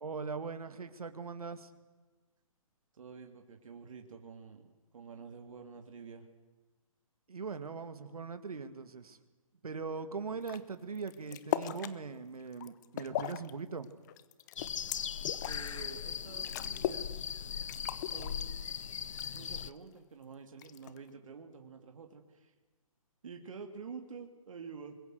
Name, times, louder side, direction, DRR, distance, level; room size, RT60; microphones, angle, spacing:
voice 1, 0.0-1.7 7.3-9.2 9.6-14.0, right 5 dB, 80° right, 10 dB, 2.1 m, -40 dB
voice 2, 2.9-6.3 15.4-17.1 17.3-17.6 18.0-18.6 19.3-22.5 23.2-24.9, right 5 dB, 65° right, 4 dB, 2.7 m, -49 dB
sound 1, 10.4-10.6 11.0-11.9 12.4-13.5 13.8-15.7 16.1-16.2 16.4-17.1 17.4-17.5 17.7-18.8 19.2-19.7 20.6-21.1, left 12 dB, 30° left, 1.0 m, -38 dB
sound 2, 14.6-19.7, left 8 dB, 60° left, 0.8 m, -39 dB
26.0 x 22.0 x 8.0 m, 1.3 s
hypercardioid pair, 150°, 18 cm